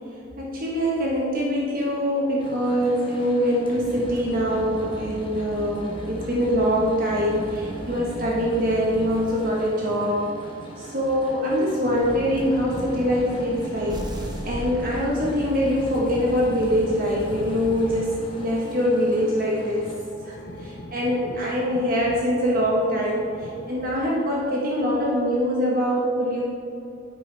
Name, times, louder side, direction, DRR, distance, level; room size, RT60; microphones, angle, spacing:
voice 1, 0.4-10.3 10.8-19.9 20.2-26.4, equal, 45° right, -4 dB, 1.4 m, -24 dB
sound 1, 2.4-19.9, equal, 25° left, 1.2 m, -37 dB
sound 2, 12.1-23.9, left 1 dB, 65° left, 1.2 m, -42 dB
sound 3, 13.9-15.8, right 1 dB, 20° right, 1.0 m, -35 dB
10.0 x 8.9 x 3.5 m, 2.6 s
head